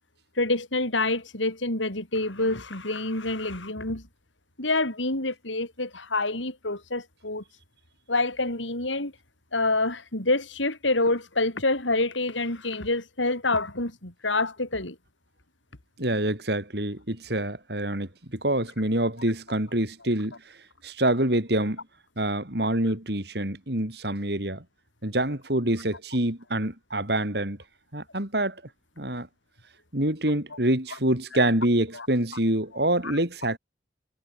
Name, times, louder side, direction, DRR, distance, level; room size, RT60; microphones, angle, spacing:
voice 1, 0.4-4.0 4.6-7.4 8.1-9.1 9.5-15.0 31.9-32.1 33.0-33.2, left 2 dB, 90° left, 6.3 m, -27 dB
voice 2, 16.0-20.3 20.8-21.8 22.2-24.6 25.0-27.6 27.9-28.6 29.0-29.3 29.9-33.6, right 1 dB, 60° right, 4.0 m, -26 dB
head